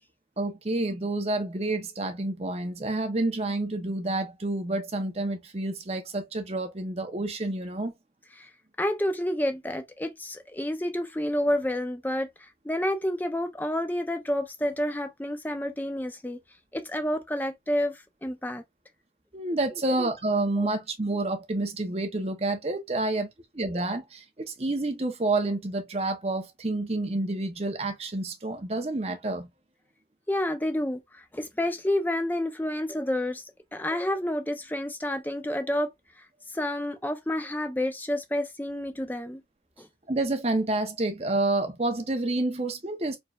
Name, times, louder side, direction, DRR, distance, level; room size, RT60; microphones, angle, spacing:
voice 1, 0.4-7.9 19.3-29.5 40.1-43.2, right 2 dB, 35° right, 0.8 m, -29 dB
voice 2, 8.8-16.4 16.7-18.6 20.6-20.7 30.3-33.4 33.7-35.9 36.5-39.4 39.8-39.9, left 1 dB, 10° left, 0.5 m, -29 dB
4.4 x 3.2 x 2.3 m
head